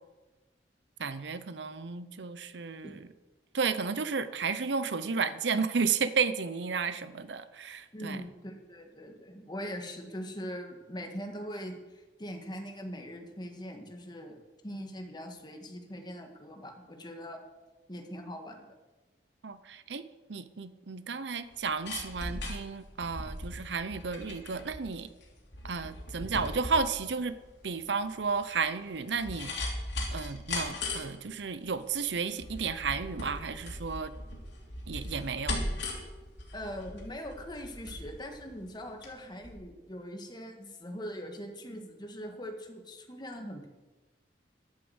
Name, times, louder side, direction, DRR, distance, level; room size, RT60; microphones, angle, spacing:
voice 1, 1.0-3.1 3.5-8.2 19.4-20.0 20.3-25.1 25.6-27.4 27.6-29.5 30.1-34.1 34.9-35.6, right 5 dB, 75° right, 13 dB, 0.7 m, -32 dB
voice 2, 7.9-17.4 17.9-18.7 36.5-43.7, equal, 25° left, 4 dB, 1.7 m, -41 dB
sound 1, 21.5-39.1 39.4-39.5, left 2 dB, 75° left, 3.4 m, -39 dB
11.5 x 8.7 x 8.0 m, 1.2 s
head